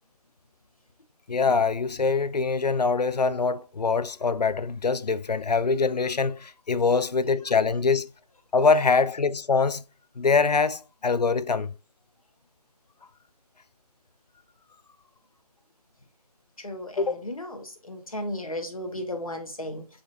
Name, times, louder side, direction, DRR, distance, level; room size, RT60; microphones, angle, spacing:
voice 1, 1.3-8.1 8.5-9.8 10.2-11.7 17.0-17.1, left 4 dB, 90° left, 0.4 m, -24 dB
voice 2, 16.6-19.9, left 1 dB, 60° left, 1.1 m, -35 dB
4.0 x 3.7 x 2.4 m
figure-of-eight pair, 175°, 21 cm